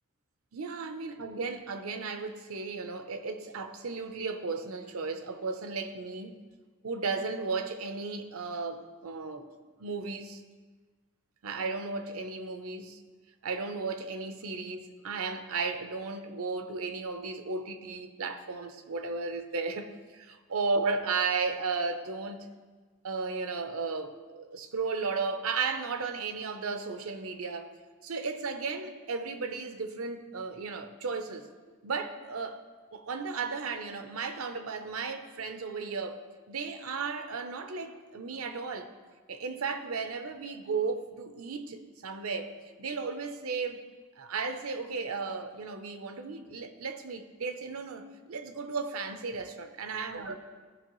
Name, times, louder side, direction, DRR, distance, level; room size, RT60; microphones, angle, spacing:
voice 1, 0.5-6.3 6.8-9.5 9.8-10.4 11.4-13.0 13.4-22.5 23.0-27.7 28.0-31.5 31.8-32.7 32.9-38.9 39.3-42.5 42.8-43.8 44.2-50.4, right 4 dB, 75° right, 0.7 m, -35 dB
14.5 x 5.4 x 3.0 m
head